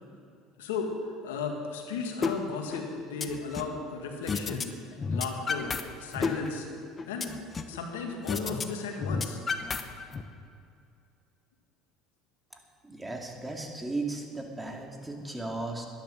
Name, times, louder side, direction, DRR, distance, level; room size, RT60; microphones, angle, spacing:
voice 1, 0.6-0.9 1.2-4.8 5.1-5.7 6.0-6.7 7.1-7.3 7.7-9.4, left 5 dB, 85° left, 2 dB, 1.7 m, -35 dB
sound 1, 2.2-2.3 2.7-3.8 4.3-4.7 4.9-5.8 6.1-7.8 8.3-8.6 8.9-10.2, left 5 dB, 35° left, 0.9 m, -31 dB
voice 2, 12.8-15.9, right 2 dB, 10° right, 2 dB, 2.2 m, -36 dB
12.0 x 10.5 x 6.3 m, 2.5 s
hypercardioid pair, 80°, 0 cm